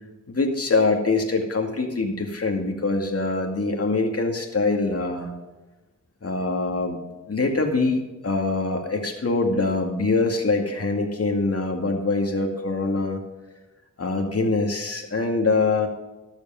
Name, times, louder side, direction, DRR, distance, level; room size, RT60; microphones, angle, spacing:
voice 1, 0.3-5.3 6.2-7.0 7.3-13.2 14.0-15.9, left 3 dB, 50° left, 2 dB, 2.1 m, -24 dB
12.0 x 7.6 x 5.7 m, 1.1 s
cardioid pair, 55°, 30 cm